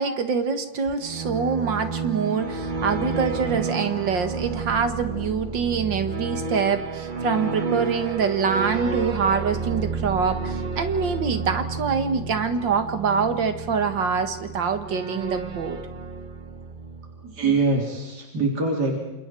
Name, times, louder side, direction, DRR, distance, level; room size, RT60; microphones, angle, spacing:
voice 1, 0.0-15.8, right 6 dB, 75° right, 8 dB, 2.4 m, -25 dB
sound 1, 0.9-17.5, right 4 dB, 30° right, 1.2 m, -31 dB
voice 2, 17.2-19.0, right 3 dB, 60° right, 0 dB, 4.1 m, -23 dB
28.5 x 28.0 x 4.6 m, 1.1 s
omnidirectional pair, 2.0 m